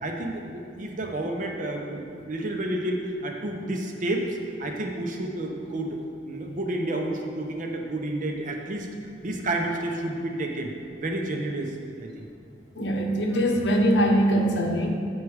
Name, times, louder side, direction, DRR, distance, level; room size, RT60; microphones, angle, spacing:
voice 1, 0.0-6.0 6.2-8.9 9.2-10.7 11.0-12.3, right 1 dB, 50° right, 2 dB, 0.8 m, -30 dB
voice 2, 12.7-14.9, equal, 80° left, 2 dB, 0.9 m, -22 dB
8.4 x 4.7 x 4.9 m, 2.5 s
head